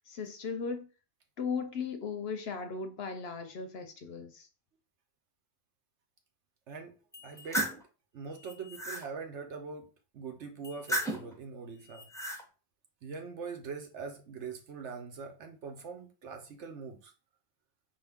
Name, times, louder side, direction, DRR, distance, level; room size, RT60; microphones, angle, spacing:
voice 1, 0.1-0.9 1.4-4.5, left 5 dB, 60° left, 0.8 m, -37 dB
voice 2, 6.7-7.0 7.2-7.7 8.1-12.1 13.0-17.1, right 5 dB, 65° right, 1.1 m, -43 dB
sound 1, 7.1-7.8 8.4-9.0 10.6-11.3 11.9-12.4, right 1 dB, 5° left, 0.6 m, -34 dB
5.4 x 2.6 x 3.5 m
omnidirectional pair, 1.3 m